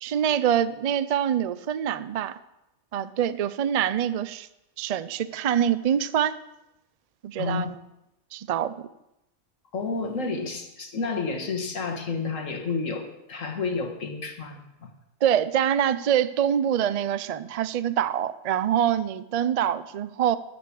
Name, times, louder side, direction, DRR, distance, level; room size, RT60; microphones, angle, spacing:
voice 1, 0.0-2.4 2.9-4.5 4.8-6.4 7.2-7.7 8.3-8.9 15.2-20.4, right 9 dB, 80° right, 14 dB, 0.3 m, -25 dB
voice 2, 9.7-14.9, left 4 dB, 75° left, 3 dB, 1.9 m, -30 dB
13.0 x 5.1 x 8.4 m, 0.91 s
omnidirectional pair, 1.3 m